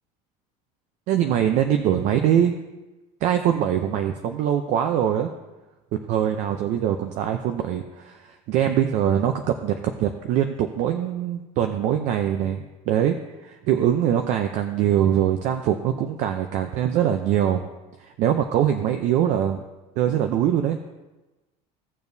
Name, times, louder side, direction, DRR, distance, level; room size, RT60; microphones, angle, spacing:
voice 1, 1.1-2.5 3.2-5.3 5.9-17.6 18.0-19.6 20.0-20.8, right 10 dB, 50° right, 6 dB, 0.6 m, -23 dB
16.5 x 7.0 x 2.7 m, 1.1 s
cardioid pair, 175°, 16 cm